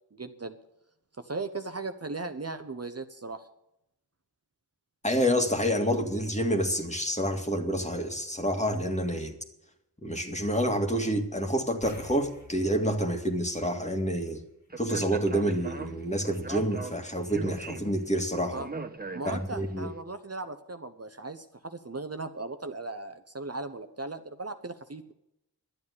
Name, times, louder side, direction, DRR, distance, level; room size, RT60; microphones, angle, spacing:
voice 1, 0.1-0.6 1.2-3.5 18.5-18.7 19.1-25.1, right 3 dB, 40° right, 8 dB, 1.0 m, -37 dB
voice 2, 5.0-9.4 10.0-14.4 14.8-18.6 19.3-19.9, equal, 15° left, 4 dB, 2.1 m, -28 dB
sound 1, 11.8-14.6 14.9-15.1 18.0-18.1 18.4-18.5, left 3 dB, 45° left, 2.3 m, -51 dB
Speech, 14.7-19.8, right 3 dB, 25° right, 1.3 m, -40 dB
11.5 x 8.5 x 8.3 m, 0.83 s
cardioid pair, 40°, 39 cm